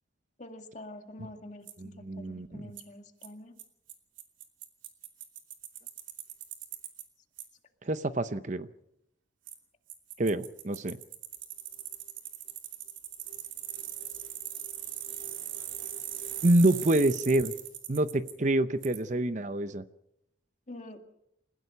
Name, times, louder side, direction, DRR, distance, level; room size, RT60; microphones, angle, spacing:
voice 1, 0.4-3.5 20.7-21.0, left 1 dB, 40° left, 4 dB, 2.2 m, -46 dB
Bicycle, 1.7-1.8 2.8-2.9 3.2-3.3 3.6-3.7 3.9-7.0 7.4-7.5 9.5-9.6 9.9-18.3 18.8-19.0, right 11 dB, 90° right, 2.9 m, -40 dB
voice 2, 1.8-2.7 7.8-8.7 10.2-11.0 16.4-17.5 17.9-19.8, right 1 dB, 40° right, 12 dB, 0.7 m, -27 dB
29.0 x 16.0 x 5.6 m, 0.81 s
head